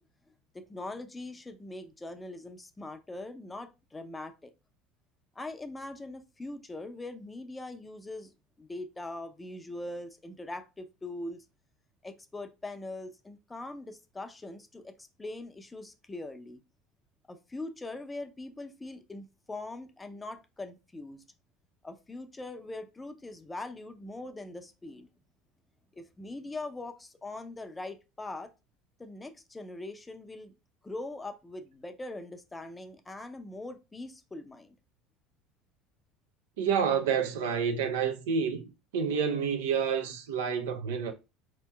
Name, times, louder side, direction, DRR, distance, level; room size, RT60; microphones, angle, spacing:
voice 1, 0.5-4.5 5.4-8.3 8.6-11.4 12.0-16.6 17.3-21.2 21.8-25.1 25.9-28.5 29.0-30.5 30.8-34.8, left 2 dB, 15° left, 0.6 m, -42 dB
voice 2, 36.6-41.1, right 6 dB, 75° right, 0.6 m, -29 dB
4.2 x 2.9 x 2.2 m
hypercardioid pair, 75°, 0 cm